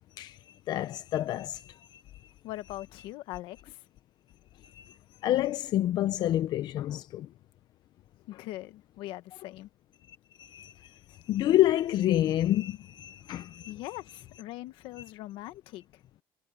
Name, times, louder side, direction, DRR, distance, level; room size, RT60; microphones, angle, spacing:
voice 1, 0.2-2.3 4.6-7.3 10.1-13.7, left 13 dB, 60° left, 0.6 m, -29 dB
voice 2, 2.4-3.8 8.3-9.7 13.7-16.0, left 16 dB, 90° left, 1.4 m, -41 dB
cardioid pair, 135°, 8 cm